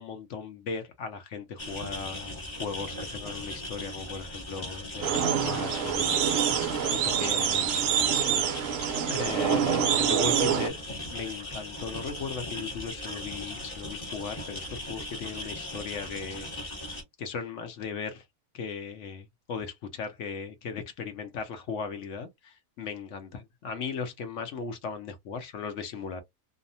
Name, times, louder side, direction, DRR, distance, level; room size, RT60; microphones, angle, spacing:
voice 1, 0.0-6.7 7.0-8.0 9.1-18.2 18.5-26.2, left 5 dB, 65° left, 0.8 m, -37 dB
sound 1, 1.6-17.0, left 1 dB, 25° left, 0.7 m, -38 dB
sound 2, 5.0-10.7, right 8 dB, 65° right, 0.8 m, -26 dB
2.7 x 2.0 x 2.6 m
omnidirectional pair, 1.7 m